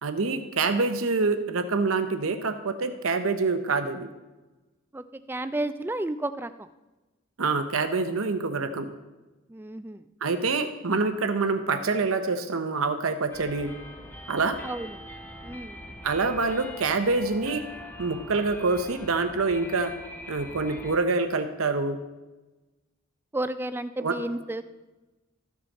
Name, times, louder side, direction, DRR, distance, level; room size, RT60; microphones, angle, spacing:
voice 1, 0.0-4.1 7.4-8.9 10.2-13.7 14.3-14.6 16.0-17.6 18.0-19.9 20.3-22.0 24.0-24.1, right 3 dB, 90° right, 8 dB, 0.8 m, -26 dB
voice 2, 4.9-6.7 9.5-10.1 14.6-15.0 15.4-15.8 23.3-24.6, right 1 dB, 10° right, 12 dB, 0.3 m, -32 dB
sound 1, 13.3-21.0, left 1 dB, 10° left, 0.8 m, -43 dB
14.0 x 6.3 x 4.1 m, 1.1 s
head